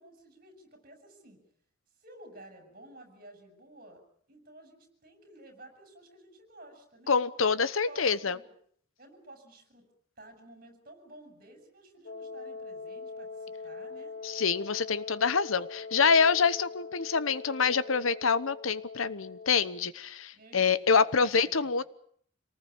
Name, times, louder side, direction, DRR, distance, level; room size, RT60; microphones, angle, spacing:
voice 1, 0.0-1.4 2.0-4.0 4.3-7.1 7.6-8.5 9.0-9.8 10.2-14.1 20.3-21.9, right 1 dB, 45° right, 5 dB, 6.7 m, -53 dB
voice 2, 7.1-8.4 14.2-21.8, left 5 dB, 85° left, 16 dB, 1.0 m, -26 dB
Wind instrument woodwind instrument, 12.0-19.9, left 4 dB, 65° left, 1.5 m, -43 dB
27.0 x 19.0 x 8.7 m, 0.63 s
head